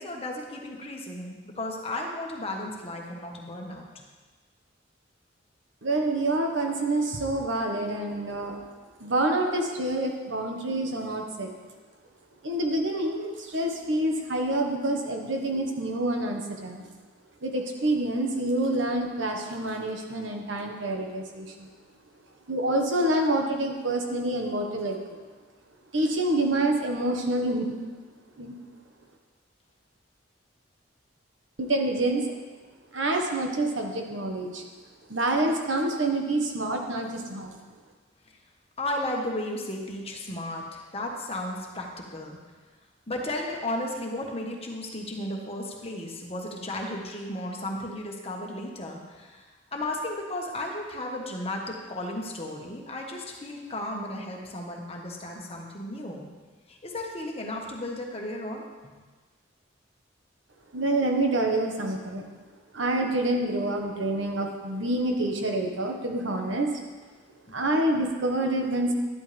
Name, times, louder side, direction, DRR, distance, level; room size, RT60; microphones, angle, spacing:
voice 1, 0.0-4.0 38.8-42.4 43.1-49.4 49.7-56.3 56.7-59.0 67.5-67.7, left 1 dB, 30° left, 0 dB, 1.5 m, -34 dB
voice 2, 5.8-8.6 9.0-11.5 12.4-16.9 17.4-21.7 22.5-25.2 25.9-27.8 28.4-28.5 31.6-32.2 32.9-34.6 35.1-37.6 60.7-62.2 62.7-66.7 67.5-68.9, right 1 dB, 75° right, 2 dB, 1.5 m, -27 dB
11.5 x 11.5 x 3.5 m, 1.4 s
head